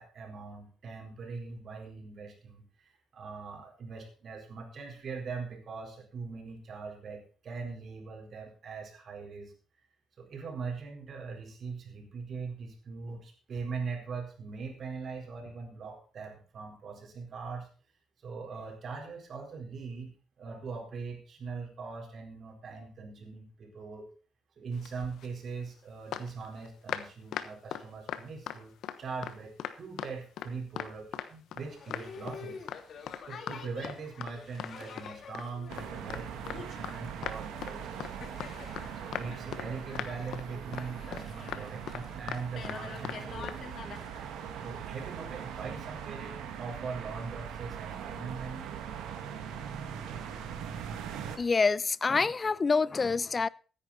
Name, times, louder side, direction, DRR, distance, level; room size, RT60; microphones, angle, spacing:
voice 1, 0.0-9.5 10.2-17.7 18.2-24.1 24.6-32.7 33.2-38.5 39.0-43.5 43.8-44.0 44.6-48.8, right 4 dB, 55° right, 4.4 m, -41 dB
sound 1, 24.8-25.4 26.1-29.0 29.2-30.5 30.8-31.6 31.9-32.4 32.7-32.8 33.1-33.2 33.5-33.6 33.8-34.7 35.0-37.0 37.2-37.7 38.0-38.1 38.4-38.9 39.1-39.7 39.9-40.4 40.7-40.9 41.1-42.8 43.0-43.2 43.4-43.6, left 10 dB, 80° left, 1.0 m, -38 dB
Boat Water vehicle, 31.6-44.8, left 6 dB, 60° left, 1.9 m, -48 dB
sound 2, 35.7-51.4, right 8 dB, 90° right, 2.0 m, -41 dB
voice 2, 51.4-53.5, left 4 dB, 30° left, 0.5 m, -26 dB
15.5 x 9.9 x 4.2 m
cardioid pair, 90°, 0 cm